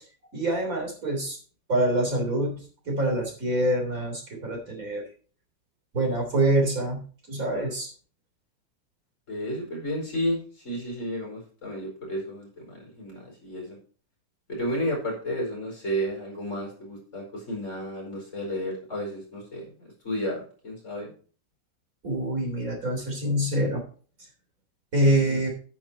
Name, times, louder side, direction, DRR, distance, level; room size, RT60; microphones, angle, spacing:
voice 1, 0.3-1.4 1.7-5.1 5.9-7.0 7.3-7.9 22.0-23.8 24.9-25.5, right 1 dB, 50° right, 0 dB, 3.9 m, -25 dB
voice 2, 9.3-13.8 14.5-21.1 25.0-25.4, equal, 45° left, -2 dB, 5.2 m, -32 dB
9.5 x 9.0 x 4.4 m, 0.41 s
omnidirectional pair, 1.8 m